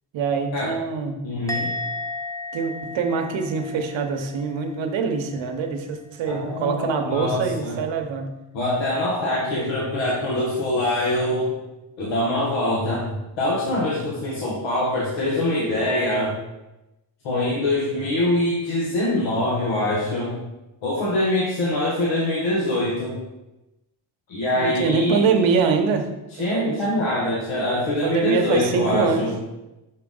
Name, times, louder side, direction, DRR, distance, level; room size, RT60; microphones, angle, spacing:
voice 1, 0.1-1.2 2.5-8.3 9.2-9.7 24.6-26.1 26.5-26.8 28.0-29.3, right 5 dB, 75° right, 5 dB, 1.0 m, -24 dB
voice 2, 1.2-1.7 6.3-7.8 8.5-11.5 12.0-16.4 17.2-20.4 20.8-23.2 24.3-25.2 26.4-29.3, left 1 dB, 90° left, -6 dB, 1.4 m, -24 dB
Musical instrument, 1.5-4.9 5.1-5.6, left 2 dB, 5° left, 0.7 m, -34 dB
5.7 x 4.6 x 3.8 m, 0.98 s
cardioid pair, 95°, 45 cm